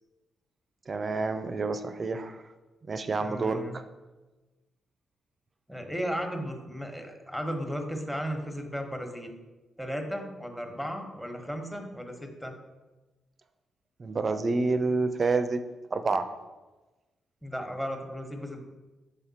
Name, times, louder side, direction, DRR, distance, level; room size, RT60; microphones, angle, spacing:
voice 1, 0.9-2.4 2.9-3.8 14.0-15.6 15.9-16.4, right 3 dB, 45° right, 10 dB, 0.5 m, -28 dB
voice 2, 3.2-3.8 5.7-9.3 9.8-12.5 17.4-18.6, equal, 5° left, 3 dB, 1.2 m, -35 dB
7.0 x 3.5 x 4.2 m, 1.2 s
hypercardioid pair, 45°, 0 cm